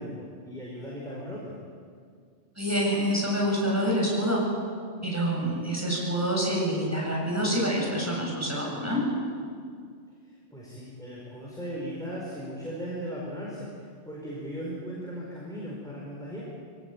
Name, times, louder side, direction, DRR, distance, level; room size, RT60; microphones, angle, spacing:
voice 1, 0.0-1.6 10.2-16.5, equal, 5° left, -5 dB, 4.8 m, -37 dB
voice 2, 2.6-4.4 5.0-9.0, equal, 10° right, -3 dB, 7.6 m, -27 dB
24.0 x 18.5 x 8.8 m, 2.1 s
omnidirectional pair, 1.2 m